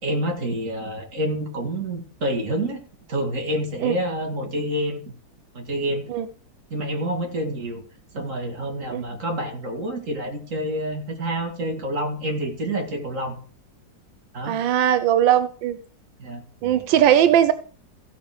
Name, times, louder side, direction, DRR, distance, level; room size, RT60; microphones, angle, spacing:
voice 1, 0.0-2.8 3.1-5.0 5.5-6.1 6.7-7.8 8.1-13.4 14.3-14.6 16.2-16.4, right 1 dB, 45° right, 2 dB, 2.6 m, -28 dB
voice 2, 14.5-15.8 16.6-17.5, right 10 dB, 85° right, 11 dB, 1.4 m, -19 dB
15.5 x 6.0 x 5.1 m, 0.42 s
omnidirectional pair, 2.0 m